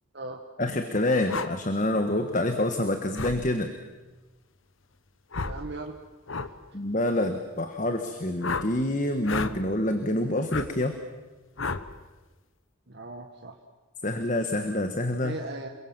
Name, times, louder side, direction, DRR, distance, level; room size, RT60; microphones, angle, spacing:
voice 1, 0.6-3.8 6.7-11.0 14.0-15.4, left 1 dB, 35° left, 7 dB, 1.5 m, -27 dB
sound 1, 1.3-1.5 3.1-3.4 5.3-5.6 6.3-6.5 8.4-8.7 9.2-9.6 10.5-10.7 11.6-11.9, left 4 dB, 70° left, 1.2 m, -31 dB
voice 2, 5.4-6.0 12.9-13.6 15.2-15.7, right 2 dB, 50° right, 2 dB, 1.6 m, -38 dB
28.0 x 22.5 x 7.5 m, 1.2 s
head